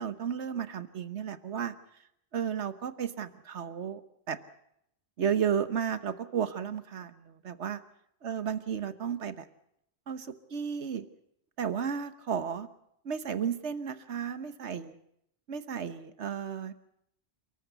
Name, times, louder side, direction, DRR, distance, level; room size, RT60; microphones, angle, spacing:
voice 1, 0.0-1.7 2.3-4.0 4.3-4.4 5.2-7.8 8.2-9.5 10.1-11.1 11.6-12.7 13.0-14.9 15.5-16.7, right 7 dB, 85° right, 12 dB, 1.4 m, -33 dB
29.5 x 13.5 x 8.1 m, 0.75 s
omnidirectional pair, 1.1 m